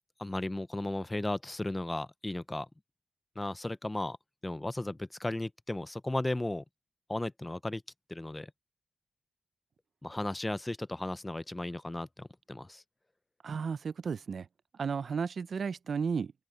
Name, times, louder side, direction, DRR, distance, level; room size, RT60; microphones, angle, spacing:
voice 1, 0.2-2.7 3.4-4.2 4.4-6.6 7.1-7.8 8.1-8.5 10.0-12.8, left 1 dB, 15° left, 0.5 m, -35 dB
voice 2, 13.4-14.5 14.7-16.3, right 6 dB, 65° right, 0.4 m, -33 dB
wide cardioid pair, 140°, 0 cm